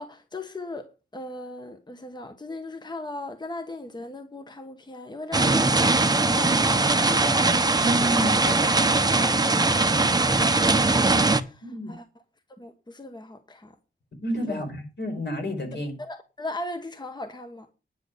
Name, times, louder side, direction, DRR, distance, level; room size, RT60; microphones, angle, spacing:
voice 1, 0.0-7.4 8.1-8.3 8.7-12.1 12.5-13.7 14.5-14.6 16.0-17.7, left 2 dB, 20° left, 1.2 m, -38 dB
sound 1, 5.3-11.4, right 3 dB, 20° right, 0.9 m, -21 dB
voice 2, 7.8-8.7 11.6-11.9 14.2-15.9, equal, 65° left, 4.8 m, -29 dB
10.5 x 7.4 x 6.7 m
wide cardioid pair, 115°, 20 cm